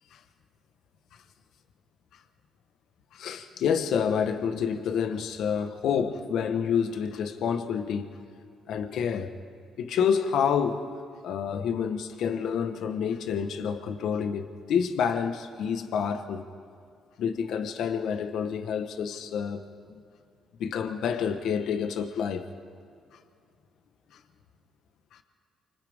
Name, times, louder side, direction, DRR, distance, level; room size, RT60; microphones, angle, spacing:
voice 1, 3.1-8.2 8.7-9.3 9.8-10.9 11.2-16.5 17.2-19.6 19.9-20.0 20.6-22.5 25.1-25.2, left 7 dB, 75° left, 1.3 m, -28 dB
28.5 x 25.5 x 3.6 m
cardioid pair, 90°, 0 cm